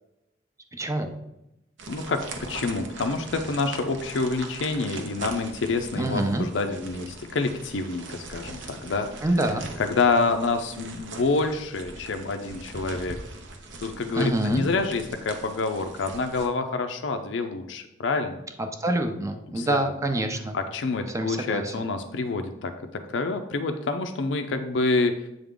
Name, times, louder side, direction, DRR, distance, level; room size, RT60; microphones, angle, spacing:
voice 1, 0.7-1.1 6.0-6.5 9.2-9.7 14.1-14.7 18.6-20.6 21.1-21.7, right 1 dB, 15° right, 6 dB, 0.5 m, -26 dB
sound 1, 1.8-16.5, right 3 dB, 80° right, 0.7 m, -41 dB
voice 2, 1.9-2.2 2.5-9.1 9.8-13.2 13.8-18.4 19.6-19.8 20.5-22.7 23.1-25.1, left 3 dB, 85° left, 6 dB, 0.5 m, -27 dB
7.8 x 3.5 x 3.7 m, 0.89 s
head